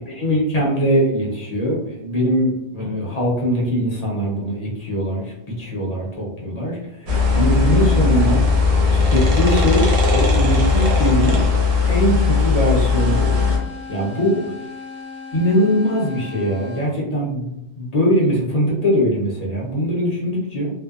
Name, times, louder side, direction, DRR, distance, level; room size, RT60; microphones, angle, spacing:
voice 1, 0.2-8.5 8.9-9.9 10.1-11.4 11.9-13.5 13.9-14.4 15.3-20.7, equal, 40° left, -3 dB, 0.7 m, -21 dB
sound 1, 7.1-13.6, left 4 dB, 45° right, 0.5 m, -17 dB
sound 2, 12.8-16.9, left 4 dB, 10° left, 0.7 m, -36 dB
2.6 x 2.1 x 2.3 m, 0.83 s
omnidirectional pair, 1.2 m